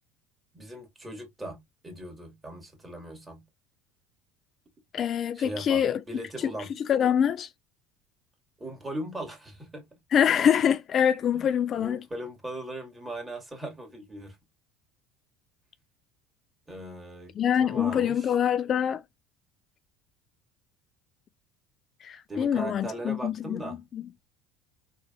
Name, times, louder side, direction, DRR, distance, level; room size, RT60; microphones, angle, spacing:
voice 1, 0.5-1.6 1.8-3.4 5.3-6.7 8.6-9.8 11.3-14.4 16.7-17.3 17.6-18.3 22.3-23.8, right 1 dB, 15° right, 2.2 m, -39 dB
voice 2, 4.9-6.0 6.9-7.5 10.1-12.0 17.4-19.0 22.0-24.0, left 8 dB, 40° left, 0.3 m, -25 dB
4.8 x 3.8 x 2.5 m
supercardioid pair, 125°, 0 cm